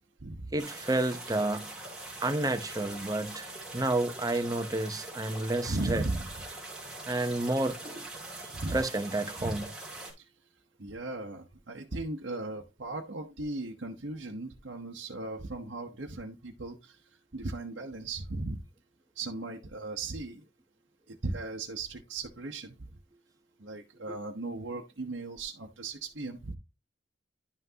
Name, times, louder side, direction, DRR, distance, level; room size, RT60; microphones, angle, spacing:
voice 1, 0.5-1.7 2.2-6.0 7.1-8.1 8.7-9.7, right 2 dB, 20° right, 0.7 m, -30 dB
sound 1, 0.6-10.1, right 2 dB, 5° right, 2.9 m, -43 dB
voice 2, 5.7-6.4 8.5-8.8 9.4-9.6 10.8-16.9 17.3-18.6 19.2-20.4 21.2-22.7 23.6-26.5, right 2 dB, 70° right, 1.0 m, -37 dB
11.0 x 5.8 x 2.8 m
head